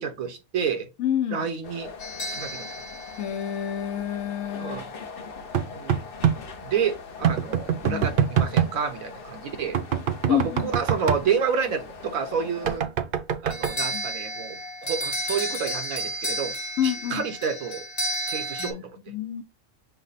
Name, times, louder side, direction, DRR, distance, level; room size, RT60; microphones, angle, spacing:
voice 1, 0.0-0.9 1.3-1.9 2.3-2.7 4.6-4.8 5.7-6.0 6.6-9.8 10.3-12.9 13.4-16.5 16.8-17.8 18.3-18.8, right 6 dB, 90° right, 1.2 m, -29 dB
voice 2, 1.0-1.5 3.2-4.8 7.8-8.1 10.3-10.7 13.9-14.1 16.8-17.2 18.6-19.4, left 10 dB, 85° left, 1.0 m, -28 dB
sound 1, 1.6-12.8, left 4 dB, 50° left, 0.8 m, -42 dB
sound 2, 2.0-4.3 13.5-18.7, right 1 dB, 35° left, 1.0 m, -32 dB
sound 3, 5.5-6.4 7.2-8.7 9.7-11.2 12.7-13.7, right 8 dB, 60° right, 0.6 m, -23 dB
5.7 x 2.1 x 4.0 m
omnidirectional pair, 1.4 m